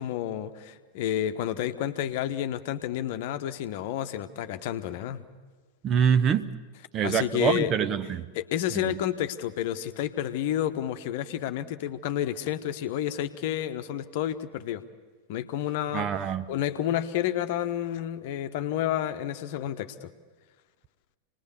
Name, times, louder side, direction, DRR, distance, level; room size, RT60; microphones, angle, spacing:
voice 1, 0.0-5.3 7.0-7.7 8.3-14.8 15.3-20.1, left 11 dB, 50° left, 9 dB, 1.0 m, -30 dB
voice 2, 5.8-6.5 6.9-8.3 8.7-8.9 15.9-16.4, right 7 dB, 30° right, 13 dB, 0.7 m, -25 dB
27.5 x 20.0 x 7.1 m, 1.4 s
figure-of-eight pair, 90°, 0 cm